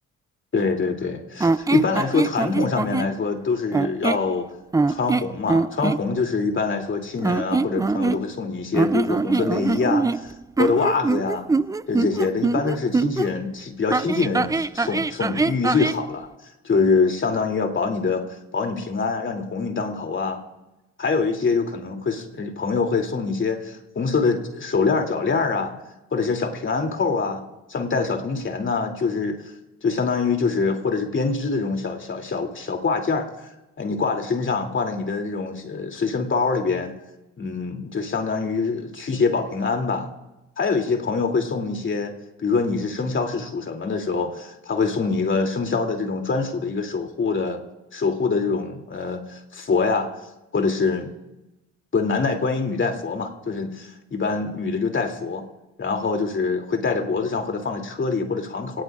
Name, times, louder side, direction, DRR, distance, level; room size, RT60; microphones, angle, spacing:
voice 1, 0.5-4.5 4.9-10.3 10.6-11.5 11.9-16.3 16.6-20.4 21.0-25.7 26.1-27.4 27.7-29.4 29.8-33.3 33.8-36.9 37.4-40.1 40.6-42.1 42.4-47.6 47.9-50.1 50.5-51.1 51.9-55.4 55.8-58.8, left 4 dB, 40° left, 3 dB, 2.8 m, -24 dB
sound 1, 1.4-3.1 3.7-4.3 4.7-6.0 7.2-8.4 8.7-13.3 13.9-16.0, right 3 dB, 10° right, 0.4 m, -23 dB
24.0 x 18.5 x 2.5 m, 0.97 s
cardioid pair, 90°, 30 cm